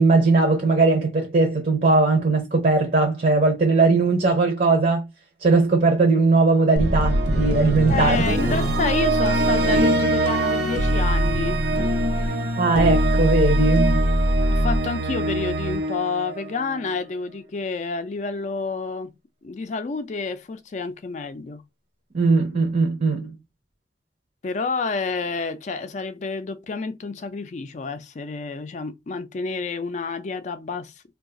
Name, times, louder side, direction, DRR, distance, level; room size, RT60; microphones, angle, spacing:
voice 1, 0.0-5.0 5.4-8.2 8.5-8.7 12.6-14.0 22.1-23.3, right 3 dB, 45° right, 0.6 m, -19 dB
sound 1, 6.8-16.9, right 1 dB, 75° right, 0.9 m, -22 dB
voice 2, 7.9-11.9 12.2-12.4 14.5-19.1 19.4-21.6 24.4-31.1, left 4 dB, 40° left, 0.4 m, -29 dB
2.4 x 2.3 x 3.6 m
head